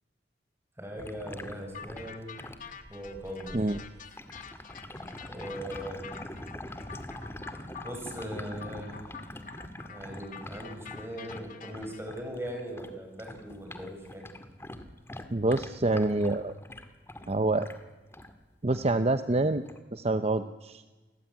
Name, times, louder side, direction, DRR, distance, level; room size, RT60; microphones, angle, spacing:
voice 1, 0.8-2.4 2.9-3.7 5.3-6.1 7.8-9.1 9.9-14.3, equal, 15° right, 2 dB, 7.3 m, -39 dB
sound 1, 1.0-12.9 13.2-18.3 18.7-19.0 19.6-19.8, left 1 dB, 15° left, 2.0 m, -44 dB
sound 2, 1.7-12.0, left 6 dB, 45° left, 2.3 m, -47 dB
voice 2, 15.3-16.5 17.3-17.7 18.6-19.6 19.9-20.8, right 2 dB, 35° right, 10 dB, 0.8 m, -26 dB
29.0 x 20.0 x 9.5 m, 1.2 s
head